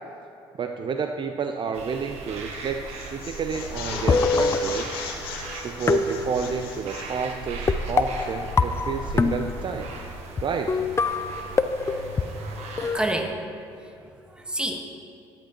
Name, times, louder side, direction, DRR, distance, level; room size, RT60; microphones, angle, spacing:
voice 1, 0.6-2.8 3.1-5.0 5.6-9.9 10.4-10.8, right 6 dB, 40° right, 6 dB, 0.5 m, -30 dB
sound 1, 1.7-13.1, right 2 dB, 65° right, 1.3 m, -37 dB
sound 2, 2.4-2.6 2.9-7.1, left 5 dB, 90° left, 1.0 m, -37 dB
sound 3, 3.9-5.3 5.9-6.8 7.7-9.8 10.4-10.5 10.7-13.0, left 4 dB, 25° left, 0.4 m, -25 dB
voice 2, 12.9-14.8, right 1 dB, 10° right, 3 dB, 1.3 m, -30 dB
13.0 x 9.0 x 3.0 m, 2.6 s
hypercardioid pair, 60°, 12 cm